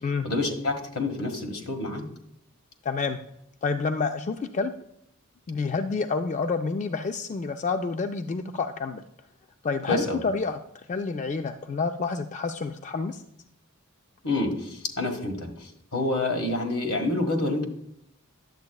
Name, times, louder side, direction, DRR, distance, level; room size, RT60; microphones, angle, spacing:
voice 1, 0.2-2.1 9.9-10.2 14.2-17.6, left 2 dB, 85° left, 3 dB, 1.6 m, -28 dB
voice 2, 2.8-3.2 3.6-4.7 5.5-9.0 9.6-10.6 10.9-13.2, left 4 dB, 35° left, 7 dB, 0.4 m, -28 dB
10.5 x 7.8 x 2.3 m, 0.75 s
head